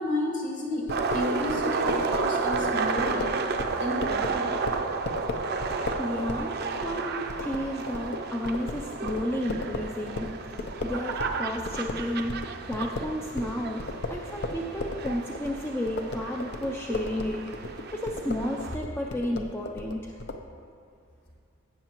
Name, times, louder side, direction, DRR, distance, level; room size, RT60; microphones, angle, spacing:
voice 1, 0.0-4.5, left 1 dB, 40° left, -3 dB, 2.0 m, -32 dB
sound 1, 0.9-11.4 11.6-20.4, left 2 dB, 55° left, 0.6 m, -36 dB
sound 2, 0.9-18.8, right 4 dB, 50° right, 0.5 m, -32 dB
voice 2, 5.7-20.2, left 1 dB, 10° left, -1 dB, 0.4 m, -32 dB
16.5 x 6.5 x 3.0 m, 2.3 s
head